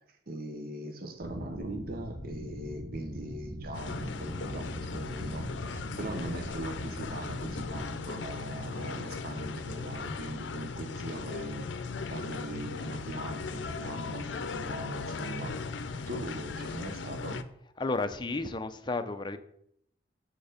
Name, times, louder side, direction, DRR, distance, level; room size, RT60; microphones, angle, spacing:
voice 1, 0.3-17.4, right 1 dB, 55° right, 5 dB, 0.9 m, -40 dB
sound 1, 1.2-7.8, equal, 80° right, 1.9 m, -41 dB
sound 2, 3.7-17.4, left 4 dB, 85° left, 0.6 m, -38 dB
voice 2, 17.8-19.4, left 3 dB, 25° left, 9 dB, 0.6 m, -32 dB
8.8 x 4.6 x 5.0 m, 0.71 s
head